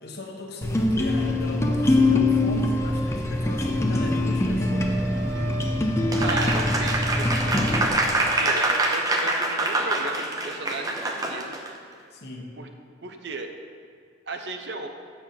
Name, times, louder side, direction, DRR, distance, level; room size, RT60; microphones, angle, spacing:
voice 1, 0.0-5.0 6.2-6.6 12.1-12.5, left 2 dB, 55° left, 0 dB, 1.2 m, -37 dB
sound 1, 0.6-7.8, left 2 dB, 15° left, 0.6 m, -23 dB
Wind instrument woodwind instrument, 4.6-8.8, equal, 40° left, 1.6 m, -38 dB
Applause, 6.1-11.7, right 2 dB, 20° right, 0.7 m, -25 dB
voice 2, 6.2-11.6 12.6-12.7 13.0-13.5 14.3-14.9, right 3 dB, 60° right, 5 dB, 0.6 m, -35 dB
7.1 x 6.7 x 5.8 m, 2.2 s
head